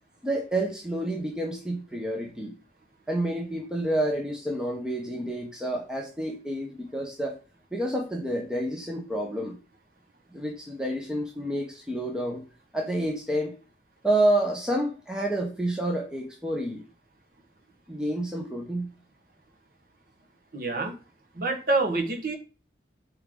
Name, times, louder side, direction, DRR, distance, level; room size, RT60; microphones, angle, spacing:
voice 1, 0.2-2.6 3.1-7.4 7.7-9.6 10.3-12.4 12.7-13.6 14.0-16.8 17.9-18.9, right 1 dB, 5° right, 0 dB, 1.0 m, -29 dB
voice 2, 20.5-20.9 21.4-22.4, right 3 dB, 55° right, 3 dB, 1.6 m, -26 dB
8.7 x 4.6 x 3.9 m, 0.35 s
head